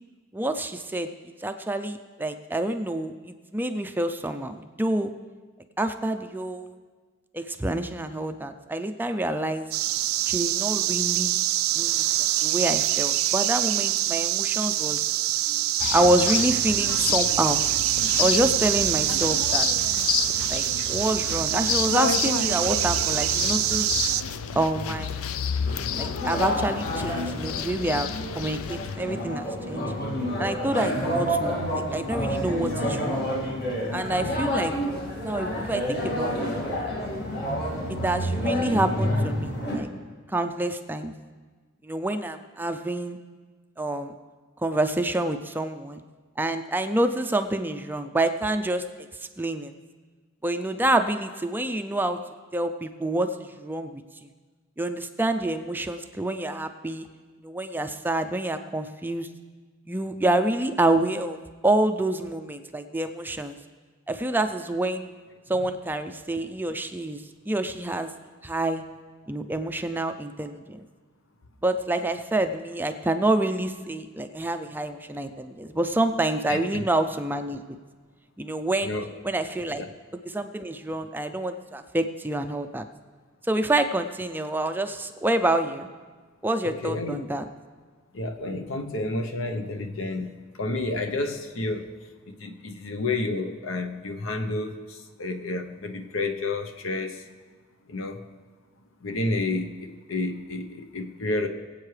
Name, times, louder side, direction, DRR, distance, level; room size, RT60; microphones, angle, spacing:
voice 1, 0.3-1.1 1.4-5.1 5.8-6.8 7.3-9.7 10.3-11.4 11.8-15.0 15.5-17.6 18.2-19.7 20.5-23.9 24.5-25.3 26.0-28.1 28.4-29.9 30.4-33.3 33.9-34.7 35.2-36.3 37.9-39.9 40.3-41.1 41.8-43.2 43.8-44.1 44.6-46.0 46.4-48.8 49.4-49.7 50.4-52.2 52.5-54.3 54.8-57.1 57.4-59.3 59.9-61.4 61.6-63.6 64.1-65.1 65.5-68.1 68.4-68.8 69.3-70.8 71.6-77.8 78.4-78.9 79.2-79.8 80.3-82.9 83.5-85.9 86.4-87.5, right 1 dB, 10° right, 8 dB, 0.4 m, -27 dB
sound 1, 9.7-24.2, right 14 dB, 90° right, 0.4 m, -25 dB
sound 2, 15.8-29.0, left 7 dB, 90° left, 0.5 m, -30 dB
sound 3, 25.7-39.8, equal, 50° left, 2.2 m, -29 dB
voice 2, 76.5-76.8 78.8-79.1 79.7-79.9 86.6-87.2 88.1-90.3 90.6-91.9 92.3-97.2 97.9-98.2 99.0-101.5, left 2 dB, 70° left, 6 dB, 0.9 m, -30 dB
22.0 x 8.3 x 3.3 m, 1.4 s
head